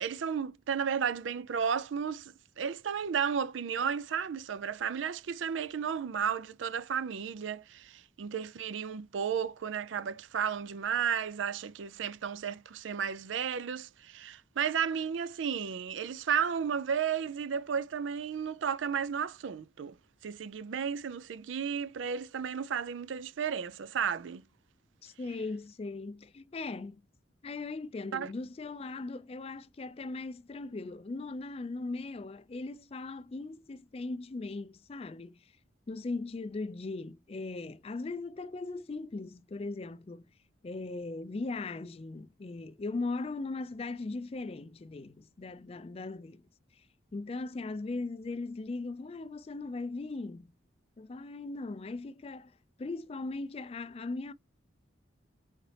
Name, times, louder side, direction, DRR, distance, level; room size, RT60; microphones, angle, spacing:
voice 1, 0.0-20.0 20.2-24.4 28.1-28.3, right 7 dB, 90° right, 0.4 m, -33 dB
voice 2, 25.0-27.0 27.4-35.4 35.9-40.3 40.6-46.4 47.1-50.5 51.0-52.5 52.8-54.3, left 3 dB, 30° left, 0.4 m, -39 dB
4.1 x 3.9 x 3.2 m
head